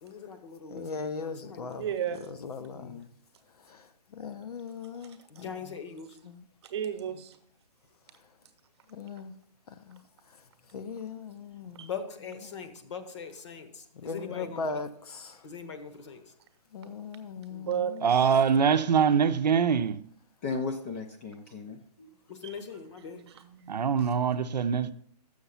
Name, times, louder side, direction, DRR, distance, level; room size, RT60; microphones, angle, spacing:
voice 1, 0.0-1.9 5.3-6.2 11.7-14.8 15.4-16.2 22.3-23.2, left 6 dB, 45° left, 1.1 m, -41 dB
voice 2, 0.7-1.8 2.5-2.9 4.2-5.2 6.3-6.4 8.9-9.3 9.9-10.0 10.7-11.8 14.0-15.3 16.7-17.7, left 4 dB, 65° left, 0.8 m, -38 dB
voice 3, 1.7-2.3 4.9-5.4 6.6-7.4 11.7-11.9 17.5-18.4 22.4-22.6 23.0-24.1, right 9 dB, 40° right, 0.9 m, -35 dB
voice 4, 2.6-3.1 20.4-22.1, left 4 dB, 20° left, 0.5 m, -36 dB
voice 5, 18.0-20.0 23.7-24.9, right 7 dB, 80° right, 0.6 m, -23 dB
7.0 x 6.5 x 5.5 m
hypercardioid pair, 155°, 21 cm